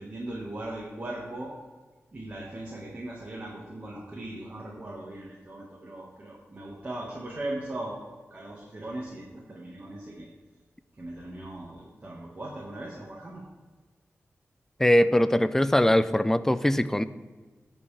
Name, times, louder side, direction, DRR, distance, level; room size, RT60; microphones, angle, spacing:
voice 1, 0.0-1.5 2.1-10.3 11.0-13.4, right 1 dB, 30° right, -4 dB, 1.6 m, -39 dB
voice 2, 14.8-17.0, left 1 dB, 10° left, 13 dB, 0.4 m, -21 dB
16.5 x 5.5 x 3.4 m, 1.4 s
wide cardioid pair, 125°, 5 cm